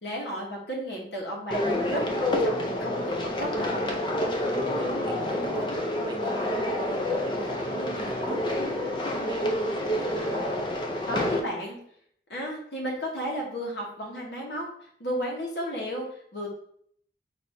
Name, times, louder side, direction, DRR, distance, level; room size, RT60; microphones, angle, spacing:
voice 1, 0.0-3.6 11.1-11.8 12.3-14.7 15.0-16.5, equal, 75° left, -2 dB, 1.1 m, -33 dB
sound 1, 1.5-11.4, left 1 dB, 25° left, 0.4 m, -28 dB
voice 2, 4.5-5.7 6.0-10.5, right 1 dB, 25° right, 2 dB, 0.5 m, -41 dB
3.3 x 2.6 x 4.3 m, 0.63 s
head